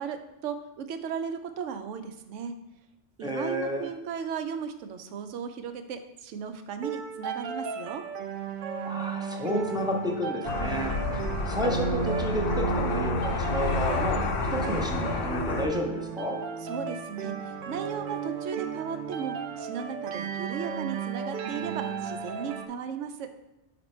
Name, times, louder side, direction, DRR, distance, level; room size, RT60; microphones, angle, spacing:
voice 1, 0.0-2.6 3.2-8.0 16.6-23.3, right 7 dB, 80° right, 8 dB, 0.9 m, -36 dB
voice 2, 3.2-3.9 8.8-14.2 14.5-16.4, left 1 dB, 5° right, 0 dB, 0.5 m, -31 dB
sound 1, 6.8-22.7, right 6 dB, 60° right, 0.5 m, -34 dB
sound 2, 10.5-15.7, left 4 dB, 80° left, 0.9 m, -30 dB
5.1 x 4.3 x 4.3 m, 0.94 s
omnidirectional pair, 1.3 m